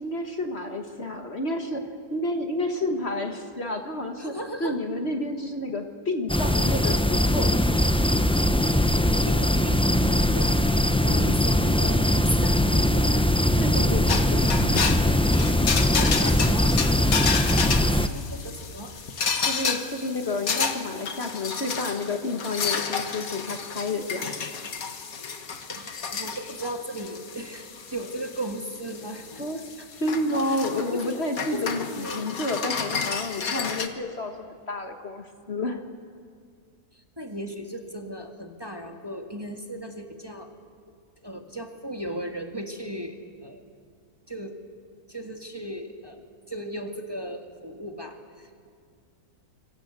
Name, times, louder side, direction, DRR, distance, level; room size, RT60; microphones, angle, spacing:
voice 1, 0.0-1.8 2.1-4.3 4.6-7.5 13.6-14.5 19.5-24.4 29.4-29.6 30.0-35.8, left 2 dB, 45° left, 5 dB, 1.8 m, -30 dB
voice 2, 4.2-4.8 9.3-13.3 16.0-16.8 17.8-19.0 24.2-24.3 25.7-29.3 29.8-29.9 30.5-30.6 30.9-31.1 31.4-32.3 36.9-40.5 41.2-43.6 44.3-44.6 45.1-46.2 46.5-48.7, right 1 dB, 15° right, 3 dB, 1.9 m, -36 dB
sound 1, 6.3-18.1, left 1 dB, 10° left, 0.4 m, -21 dB
sound 2, 14.1-33.9, left 5 dB, 65° left, 1.9 m, -31 dB
27.0 x 24.5 x 8.2 m, 2.2 s
omnidirectional pair, 1.6 m